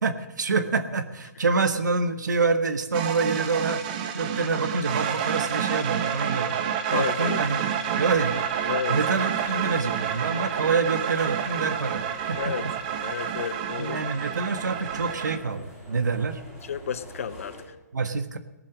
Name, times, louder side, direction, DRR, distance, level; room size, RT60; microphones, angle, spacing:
voice 1, 0.0-3.8 4.1-6.6 6.9-8.3 8.9-12.7 13.8-16.4 17.9-18.4, right 4 dB, 90° right, 8 dB, 1.5 m, -26 dB
sound 1, 2.9-15.4, right 8 dB, 25° right, 1.0 m, -29 dB
voice 2, 6.9-7.4 8.7-9.0 12.4-12.6 13.0-14.0 16.6-17.7, left 7 dB, 50° left, 14 dB, 0.7 m, -31 dB
sound 2, 8.0-17.7, right 1 dB, 5° right, 3.6 m, -46 dB
18.5 x 7.6 x 6.2 m, 1.1 s
hypercardioid pair, 165°, 9 cm